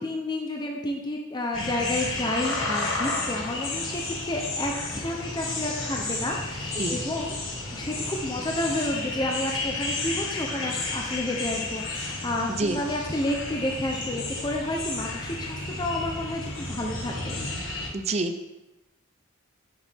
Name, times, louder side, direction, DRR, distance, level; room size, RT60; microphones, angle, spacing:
voice 1, 0.0-7.4 7.7-17.4, left 1 dB, 20° left, 0 dB, 0.8 m, -30 dB
sound 1, 1.5-17.9, left 2 dB, 75° left, 1.7 m, -32 dB
voice 2, 12.5-12.8 17.9-18.5, right 2 dB, 30° right, 6 dB, 0.6 m, -28 dB
8.7 x 7.1 x 3.6 m, 0.97 s
head